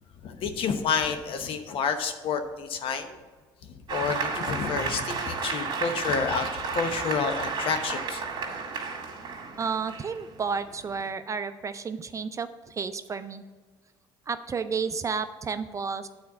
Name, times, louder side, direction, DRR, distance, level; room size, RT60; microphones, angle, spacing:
voice 1, 0.2-3.2 3.9-8.2, left 6 dB, 60° left, 7 dB, 1.0 m, -29 dB
Applause, 3.9-11.1, right 4 dB, 50° right, 1.9 m, -33 dB
voice 2, 9.6-13.4 14.3-16.1, right 5 dB, 30° right, 11 dB, 0.5 m, -31 dB
8.4 x 4.4 x 6.8 m, 1.4 s
supercardioid pair, 85°, 10 cm